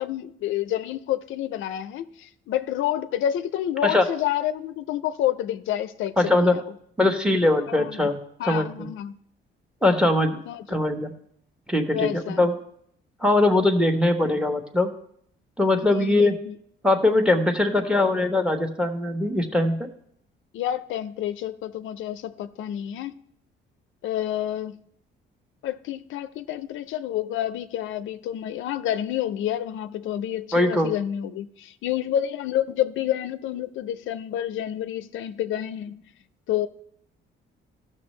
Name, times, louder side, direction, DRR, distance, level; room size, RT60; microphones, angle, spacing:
voice 1, 0.0-6.7 7.7-8.1 8.4-9.2 10.5-10.8 11.9-12.4 15.9-16.5 20.5-23.1 24.0-24.8 25.6-36.0 36.5-36.7, left 11 dB, 80° left, 0.5 m, -29 dB
voice 2, 6.2-6.5 7.0-8.2 8.4-8.9 9.8-10.4 10.7-11.1 11.7-12.5 13.2-14.9 15.6-16.4 16.8-19.8 30.5-30.9, left 2 dB, 5° right, 1.1 m, -21 dB
14.5 x 6.5 x 3.2 m
cardioid pair, 90°, 20 cm